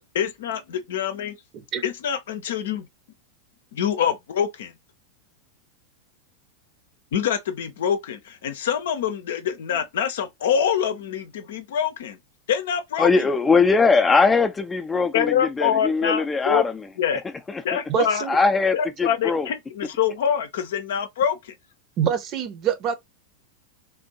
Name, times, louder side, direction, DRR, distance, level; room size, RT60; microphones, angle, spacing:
voice 1, 0.1-1.3 1.8-2.9 3.7-4.7 7.1-12.2 12.5-13.1 15.1-16.6 17.0-17.2 17.6-18.3 18.7-21.5, left 8 dB, 60° left, 0.6 m, -25 dB
voice 2, 13.0-16.8 17.5-17.6 18.3-19.5, left 4 dB, 15° left, 0.5 m, -20 dB
voice 3, 17.9-18.4 22.0-22.9, right 9 dB, 35° right, 0.8 m, -25 dB
3.5 x 2.5 x 2.8 m
figure-of-eight pair, 90°, 0 cm